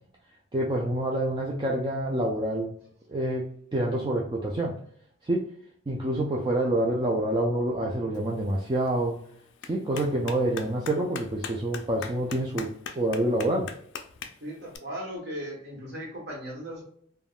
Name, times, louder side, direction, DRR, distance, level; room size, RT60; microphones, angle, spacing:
voice 1, 0.5-2.7 3.1-4.7 5.2-5.5 5.9-9.2 9.6-13.7, right 1 dB, 20° right, -2 dB, 0.3 m, -27 dB
Clapping, 8.1-14.8, left 6 dB, 55° left, 0.3 m, -43 dB
voice 2, 14.4-16.8, equal, 50° right, -2 dB, 1.1 m, -37 dB
3.4 x 2.1 x 2.3 m, 0.63 s
head